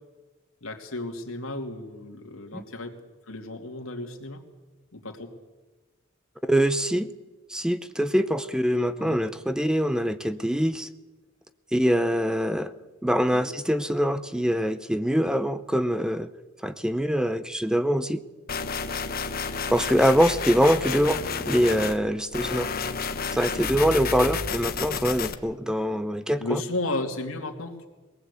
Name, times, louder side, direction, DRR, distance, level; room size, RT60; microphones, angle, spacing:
voice 1, 0.6-3.0 3.3-4.4 4.9-5.3 9.0-9.2 13.3-13.5 26.4-27.9, left 2 dB, 85° left, 4 dB, 2.8 m, -33 dB
voice 2, 6.4-7.1 7.5-10.9 11.7-12.7 13.0-16.3 16.6-18.2 19.7-22.7 23.3-26.6, equal, 5° right, 12 dB, 0.7 m, -24 dB
sound 1, 18.5-22.0 22.3-25.3, left 5 dB, 45° left, 1.2 m, -30 dB
22.0 x 18.5 x 8.4 m, 1.2 s
head